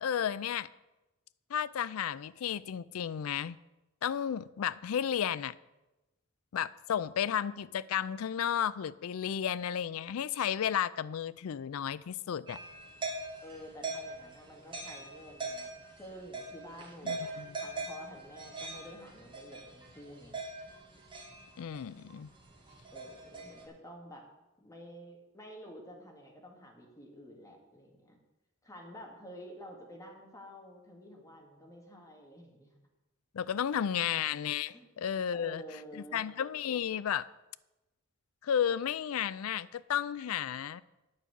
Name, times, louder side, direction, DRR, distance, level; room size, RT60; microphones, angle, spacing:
voice 1, 0.0-0.7 1.5-3.6 4.0-5.5 6.5-12.6 17.0-17.5 21.6-22.3 33.3-35.6 35.9-37.3 38.4-40.8, left 9 dB, 85° left, 0.4 m, -33 dB
sound 1, 12.5-23.7, right 3 dB, 25° right, 2.2 m, -42 dB
voice 2, 13.4-15.7 16.0-20.4 22.9-24.3 24.6-28.2 28.6-32.7 34.7-34.9 35.3-36.3, equal, 15° left, 2.0 m, -50 dB
9.5 x 5.9 x 8.5 m
head